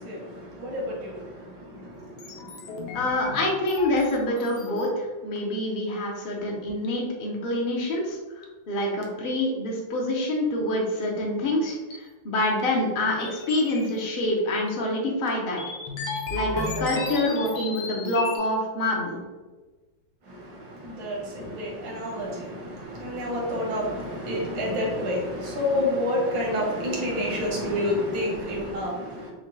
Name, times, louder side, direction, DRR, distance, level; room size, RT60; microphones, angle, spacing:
voice 1, 0.0-2.9 20.2-29.3, left 1 dB, 85° right, 1.9 m, -29 dB
sound 1, 2.2-4.9 5.4-5.5 6.8-6.9 7.9-8.0 8.4-8.5 9.0-9.1 11.9-12.0 12.4-12.7 13.0-14.0 14.4-14.5 14.7-14.8 15.3-15.4 15.6-18.4, left 3 dB, 90° left, 1.5 m, -34 dB
voice 2, 2.9-15.6 16.3-19.2, left 1 dB, 60° left, 0.5 m, -26 dB
6.2 x 2.2 x 3.1 m
omnidirectional pair, 2.0 m